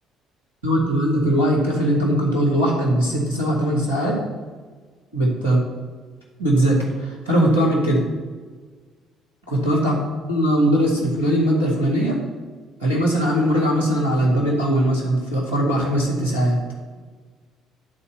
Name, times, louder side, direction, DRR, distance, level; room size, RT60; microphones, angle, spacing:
voice 1, 0.6-4.2 5.1-5.6 6.4-8.0 9.5-10.0 10.3-12.2 12.8-16.6, equal, 85° right, -4 dB, 2.1 m, -20 dB
11.0 x 4.2 x 7.0 m, 1.5 s
figure-of-eight pair, 50°, 0 cm